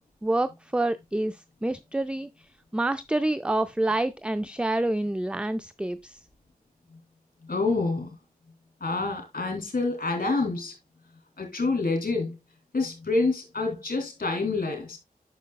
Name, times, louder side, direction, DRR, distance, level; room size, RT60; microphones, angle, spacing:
voice 1, 0.2-2.3 2.7-6.2, right 2 dB, 5° right, 0.4 m, -27 dB
voice 2, 7.4-8.1 8.8-10.7 11.4-12.3 12.7-15.0, left 3 dB, 65° left, 2.8 m, -27 dB
9.2 x 6.3 x 2.2 m
wide cardioid pair, 55°, 16 cm